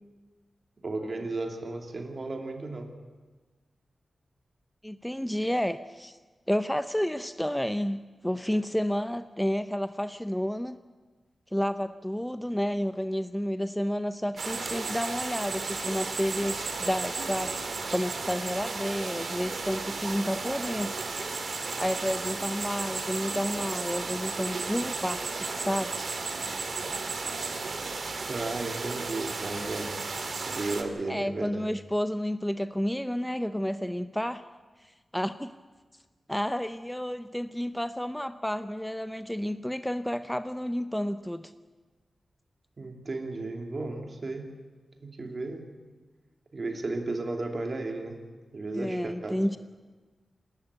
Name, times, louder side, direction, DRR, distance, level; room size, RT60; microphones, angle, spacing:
voice 1, 0.8-2.9 28.3-30.0 30.4-31.7 42.8-44.5 45.0-45.7 46.5-48.2 48.5-49.4, right 2 dB, 50° right, 3 dB, 2.9 m, -34 dB
voice 2, 4.8-6.2 6.5-10.8 11.5-17.5 17.9-21.0 21.8-26.1 31.1-34.4 35.1-35.5 36.3-41.5 48.7-49.6, equal, 5° left, 11 dB, 0.6 m, -30 dB
sound 1, 14.4-30.8, right 4 dB, 65° right, 2.3 m, -34 dB
27.5 x 12.5 x 8.3 m, 1.3 s
wide cardioid pair, 75°, 0 cm